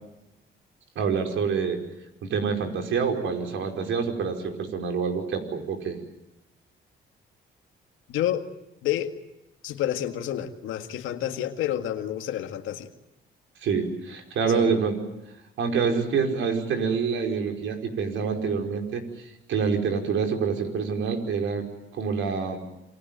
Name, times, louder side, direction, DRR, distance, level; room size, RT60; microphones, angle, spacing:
voice 1, 0.9-1.8 2.2-6.0 13.6-15.0 15.6-21.7 21.9-22.6, right 5 dB, 75° right, 4 dB, 5.0 m, -26 dB
voice 2, 8.1-8.4 8.8-9.1 9.6-12.9 14.5-14.8, left 11 dB, 90° left, 7 dB, 2.0 m, -29 dB
28.0 x 23.5 x 9.0 m, 0.90 s
cardioid pair, 90°, 20 cm